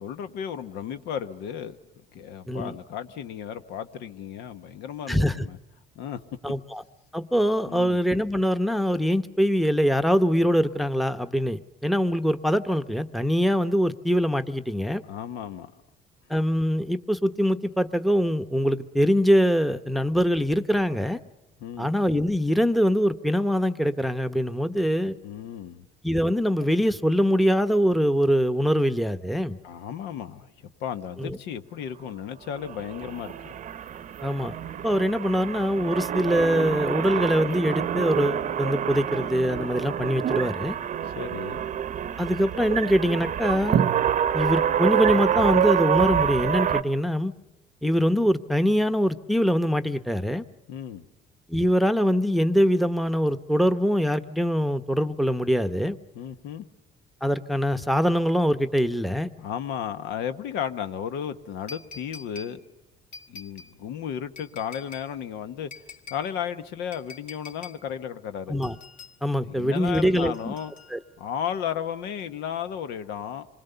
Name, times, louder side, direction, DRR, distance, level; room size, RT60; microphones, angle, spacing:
voice 1, 0.0-1.8 2.1-5.6 5.9-6.2 7.7-8.0 15.1-15.7 21.6-21.9 25.2-25.8 29.6-33.6 41.0-41.7 50.7-51.1 56.1-56.7 59.4-62.6 63.3-65.7 66.1-68.6 69.4-70.7 71.2-73.5, left 8 dB, 90° left, 1.1 m, -34 dB
voice 2, 6.4-6.8 7.1-15.0 16.3-21.2 21.8-25.2 26.0-29.6 31.2-31.4 34.2-34.5 34.8-40.8 42.2-43.8 44.3-47.3 47.8-50.4 51.5-56.0 57.2-59.3 68.5-68.8 69.2-70.5 70.9-71.0, equal, ahead, 0.8 m, -23 dB
sound 1, 32.6-46.8, right 9 dB, 50° right, 0.7 m, -27 dB
sound 2, 61.7-62.6 63.1-63.7 64.4-65.1 65.7-66.3 66.9-67.8 68.6-69.2 69.9-71.2 72.2-72.3, left 4 dB, 55° left, 2.4 m, -45 dB
27.0 x 21.5 x 6.9 m
cardioid pair, 110°, 17 cm